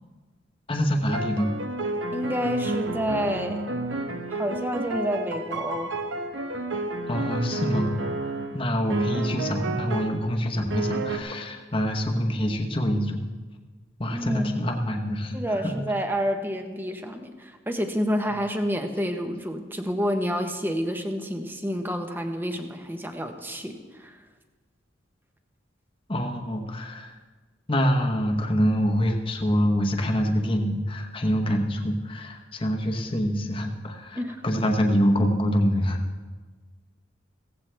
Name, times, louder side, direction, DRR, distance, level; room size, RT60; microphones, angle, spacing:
voice 1, 0.7-1.5 7.1-8.0 8.5-13.2 14.0-15.7 26.1-27.1 27.7-36.0, equal, 30° left, 2 dB, 1.0 m, -25 dB
sound 1, 1.1-8.6 8.9-10.2 10.7-11.2, right 2 dB, 85° right, 1.0 m, -30 dB
voice 2, 2.1-3.6 4.3-5.9 14.1-14.6 15.3-24.2 34.1-34.4, equal, 10° right, 5 dB, 1.0 m, -29 dB
16.0 x 15.0 x 3.4 m, 1.4 s
head